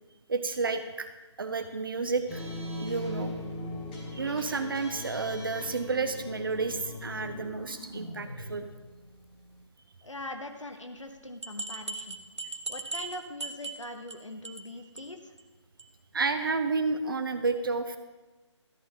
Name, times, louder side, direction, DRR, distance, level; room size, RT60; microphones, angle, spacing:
voice 1, 0.3-1.1 1.4-2.5 2.8-3.3 4.1-8.7 12.4-12.5 16.1-18.0, right 4 dB, 45° right, 8 dB, 0.6 m, -31 dB
sound 1, 2.3-9.6, left 1 dB, 15° left, 1.5 m, -40 dB
voice 2, 10.0-12.2 12.7-15.3, left 1 dB, 80° left, 5 dB, 1.1 m, -42 dB
sound 2, 11.0-11.1 11.4-14.2 14.4-14.7 15.0-15.1 15.4-15.5 15.8-15.9, right 3 dB, 65° right, 1.0 m, -38 dB
13.5 x 8.6 x 3.8 m, 1.2 s
figure-of-eight pair, 150°, 16 cm